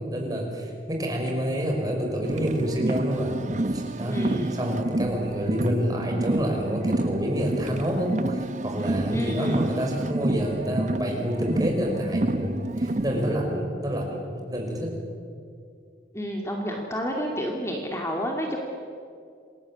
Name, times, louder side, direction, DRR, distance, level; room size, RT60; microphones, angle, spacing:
voice 1, 0.0-3.4 3.7-14.9, equal, 20° right, 0 dB, 5.4 m, -28 dB
Car, 2.2-13.3, right 2 dB, 45° right, 0.8 m, -29 dB
voice 2, 4.1-4.6 9.1-9.6 16.1-18.6, equal, 15° left, 1 dB, 2.3 m, -30 dB
28.0 x 20.5 x 8.7 m, 2.3 s
head